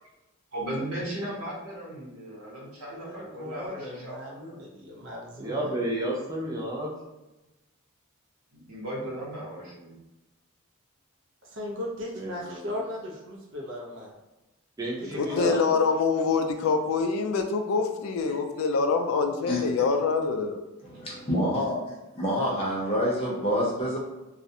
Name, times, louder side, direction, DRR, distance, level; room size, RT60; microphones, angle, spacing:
voice 1, 0.5-4.7 8.5-9.9, right 1 dB, 90° right, -4 dB, 0.9 m, -36 dB
voice 2, 2.9-5.8 11.4-14.1 15.0-15.8, left 1 dB, 60° right, -2 dB, 0.6 m, -37 dB
voice 3, 5.4-6.9 12.2-12.7 14.8-15.6, right 1 dB, 15° right, -3 dB, 0.4 m, -31 dB
voice 4, 15.2-20.6, left 4 dB, 75° left, 6 dB, 0.3 m, -25 dB
voice 5, 20.8-21.8 22.2-24.0, equal, 25° left, -5 dB, 0.6 m, -27 dB
2.4 x 2.1 x 2.7 m, 1.0 s
head